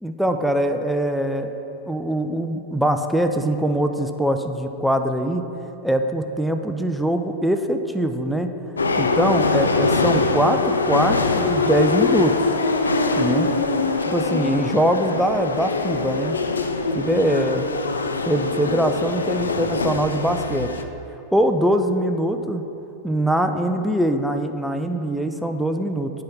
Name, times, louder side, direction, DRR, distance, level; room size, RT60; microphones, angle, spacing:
voice 1, 0.0-1.5 1.9-5.4 5.8-8.5 9.0-12.3 13.2-13.5 14.1-16.4 17.0-17.7 18.3-20.7 21.3-22.7 23.0-26.1, right 1 dB, ahead, 6 dB, 0.4 m, -22 dB
sound 1, 8.8-20.8, left 3 dB, 75° left, 0.4 m, -23 dB
8.9 x 5.6 x 3.5 m, 2.9 s
figure-of-eight pair, 90°, 0 cm